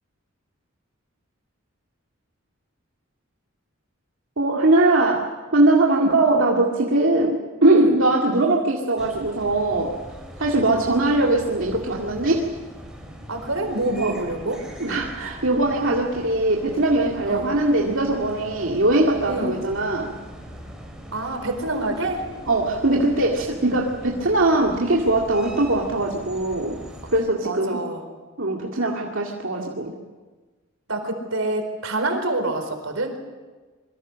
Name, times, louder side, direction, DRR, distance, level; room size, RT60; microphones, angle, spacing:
voice 1, 4.4-10.0 10.4-12.5 14.0-14.1 14.8-20.1 22.5-26.8 27.1-27.8 28.4-29.9, right 2 dB, 70° right, -2 dB, 2.3 m, -21 dB
sound 1, 9.0-27.2, equal, 5° right, 4.7 m, -41 dB
voice 2, 13.3-14.6 17.2-17.5 19.2-19.6 21.1-22.3 27.4-28.1 29.5-29.8 30.9-33.2, right 2 dB, 90° right, 5 dB, 4.5 m, -27 dB
26.5 x 23.5 x 6.4 m, 1.3 s
head